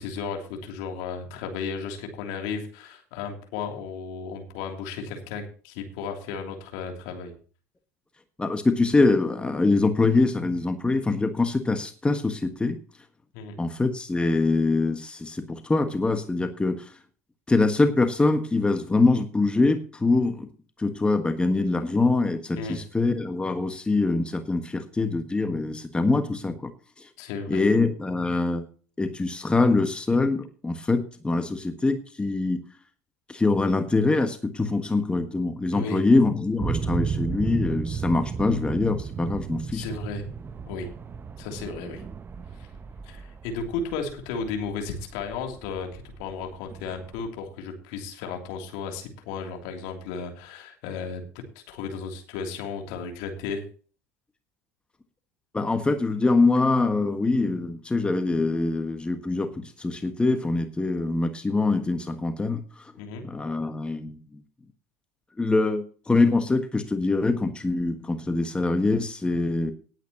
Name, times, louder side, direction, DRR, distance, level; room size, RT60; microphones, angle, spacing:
voice 1, 0.0-7.3 13.3-13.5 22.6-22.8 27.2-27.7 35.7-36.0 39.7-40.2 40.7-40.9 41.4-42.0 42.5-42.7 43.0-51.2 51.5-53.6 63.0-63.2, left 5 dB, 60° left, 3 dB, 3.1 m, -34 dB
voice 2, 8.4-12.8 13.6-17.0 17.5-20.5 20.8-26.7 27.0-27.1 27.5-28.7 29.0-32.6 33.3-39.8 55.5-62.9 63.2-64.4 65.4-69.7, left 3 dB, 15° left, 8 dB, 1.5 m, -24 dB
sound 1, 36.6-47.3, right 6 dB, 30° right, 0.8 m, -34 dB
18.0 x 9.1 x 3.0 m, 0.40 s
figure-of-eight pair, 65°, 8 cm